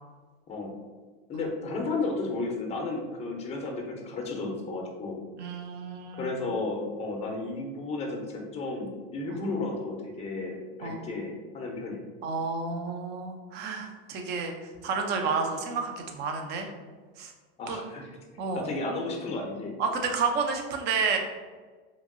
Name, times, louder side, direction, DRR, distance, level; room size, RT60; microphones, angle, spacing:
voice 1, 1.3-5.2 6.2-12.0 17.6-18.2 18.5-19.8, left 3 dB, 20° left, 1 dB, 0.5 m, -33 dB
voice 2, 5.4-6.3 9.3-9.4 10.8-11.1 12.2-14.5 14.8-16.7 17.2-17.3 17.7-17.8 18.4-18.7 19.8-21.2, right 5 dB, 35° right, 4 dB, 0.4 m, -30 dB
2.9 x 2.5 x 2.5 m, 1.4 s
supercardioid pair, 125°, 29 cm